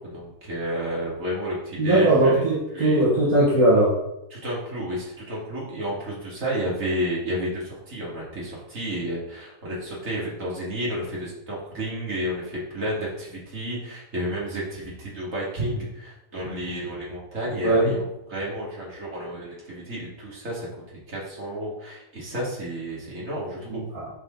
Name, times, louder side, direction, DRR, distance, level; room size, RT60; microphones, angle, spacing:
voice 1, 0.0-3.1 4.3-20.7 21.1-23.8, equal, 65° right, -6 dB, 3.1 m, -31 dB
voice 2, 1.8-3.9 17.6-17.9 23.7-24.1, right 1 dB, 85° right, -7 dB, 2.6 m, -20 dB
11.0 x 4.6 x 4.0 m, 0.86 s
omnidirectional pair, 1.5 m